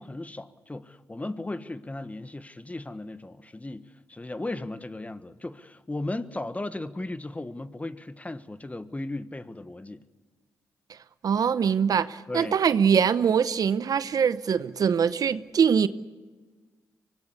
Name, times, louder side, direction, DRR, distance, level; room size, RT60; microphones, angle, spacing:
voice 1, 0.0-10.0 12.3-12.6, left 2 dB, 20° left, 1.4 m, -36 dB
voice 2, 11.2-15.9, right 7 dB, 60° right, 0.8 m, -23 dB
24.5 x 18.5 x 8.4 m
supercardioid pair, 45°, 7 cm